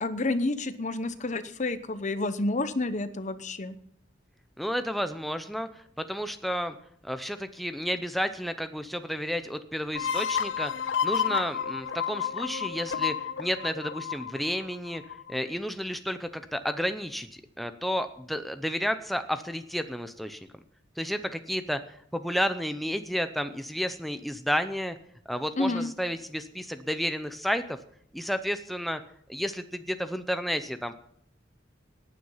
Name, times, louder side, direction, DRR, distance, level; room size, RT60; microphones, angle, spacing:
voice 1, 0.0-3.8 25.6-25.9, left 2 dB, 40° left, 12 dB, 0.9 m, -29 dB
voice 2, 4.6-6.7 7.0-10.7 11.0-15.0 15.3-17.3 17.6-20.4 21.0-25.0 25.3-27.8 28.1-29.0 29.3-30.9, equal, ahead, 8 dB, 0.6 m, -31 dB
sound 1, 9.9-15.4, left 7 dB, 75° left, 0.7 m, -31 dB
18.5 x 9.5 x 5.6 m, 0.66 s
head